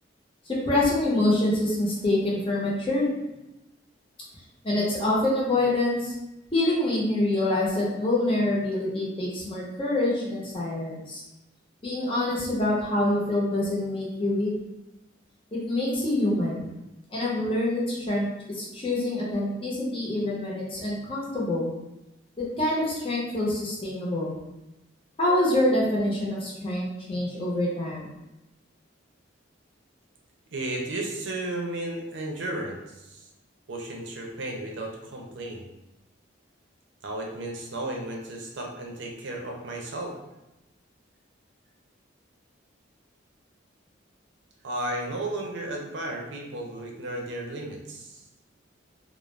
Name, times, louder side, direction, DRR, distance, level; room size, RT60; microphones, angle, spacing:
voice 1, 0.4-3.1 4.6-6.1 6.5-11.2 11.8-14.5 15.5-16.7 17.1-21.7 22.6-24.4 25.2-28.1, left 1 dB, 30° left, -5 dB, 0.7 m, -26 dB
voice 2, 30.5-33.3 33.7-35.7 37.0-40.1 44.6-48.2, right 1 dB, 65° right, 0 dB, 0.5 m, -34 dB
2.4 x 2.0 x 3.1 m, 0.96 s
head